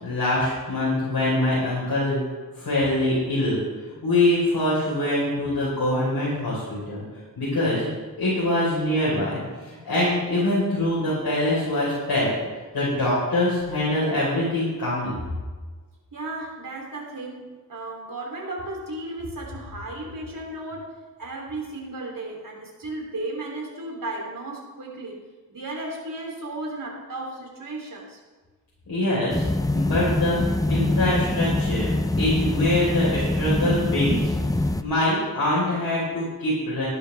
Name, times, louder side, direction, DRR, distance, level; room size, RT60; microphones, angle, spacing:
voice 1, 0.0-2.2 2.6-3.6 4.0-7.0 7.4-7.9 8.2-9.4 9.7-12.3 12.7-15.2 28.9-29.4 29.7-30.4 30.7-31.9 32.2-34.3 34.8-36.9, left 1 dB, 85° left, -8 dB, 4.9 m, -24 dB
voice 2, 16.1-20.9 21.2-25.2 25.5-28.2, right 2 dB, 60° right, -1 dB, 3.7 m, -34 dB
sound 1, 29.3-34.8, left 2 dB, 10° left, 0.6 m, -24 dB
15.0 x 11.5 x 3.6 m, 1.3 s
wide cardioid pair, 70°, 37 cm